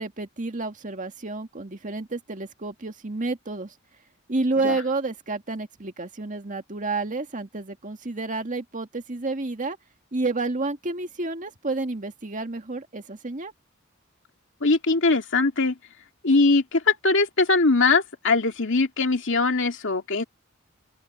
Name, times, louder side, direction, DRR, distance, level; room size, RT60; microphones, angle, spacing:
voice 1, 0.0-3.7 4.3-9.8 10.1-13.5, right 3 dB, 40° right, 1.9 m, -30 dB
voice 2, 14.6-15.7 16.2-20.2, left 3 dB, 65° left, 2.5 m, -21 dB
open air
head